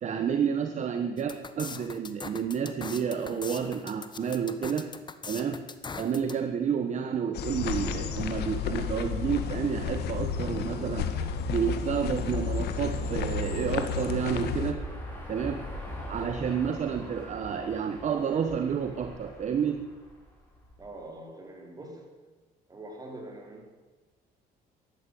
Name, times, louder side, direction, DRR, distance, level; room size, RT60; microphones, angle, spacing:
voice 1, 0.0-4.9 5.3-5.6 6.0-11.1 11.5-14.8 15.3-15.6 16.1-19.8, right 7 dB, 45° right, 7 dB, 1.2 m, -30 dB
sound 1, 1.2-6.4, left 5 dB, 25° left, 1.2 m, -41 dB
sound 2, 7.3-14.7, left 6 dB, 75° left, 1.7 m, -32 dB
sound 3, 12.3-20.9, equal, 10° left, 5.6 m, -43 dB
voice 2, 20.8-22.1 22.7-23.7, right 1 dB, 20° right, 1 dB, 4.5 m, -43 dB
14.0 x 11.5 x 8.5 m, 1.3 s
cardioid pair, 110°, 17 cm